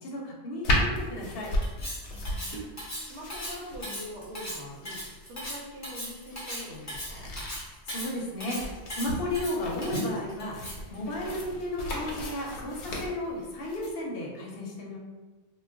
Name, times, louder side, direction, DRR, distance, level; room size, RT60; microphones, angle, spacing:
voice 1, 0.0-1.5 7.9-8.6 8.9-10.6 10.9-15.0, left 1 dB, 65° left, -2 dB, 0.8 m, -33 dB
sound 1, 0.6-13.9, left 1 dB, 85° left, 0.9 m, -35 dB
Cutlery silverware, 1.6-10.9, equal, 20° left, 0.5 m, -38 dB
voice 2, 2.1-7.3, equal, 80° right, -2 dB, 1.0 m, -44 dB
2.3 x 2.1 x 3.4 m, 1.2 s
omnidirectional pair, 1.1 m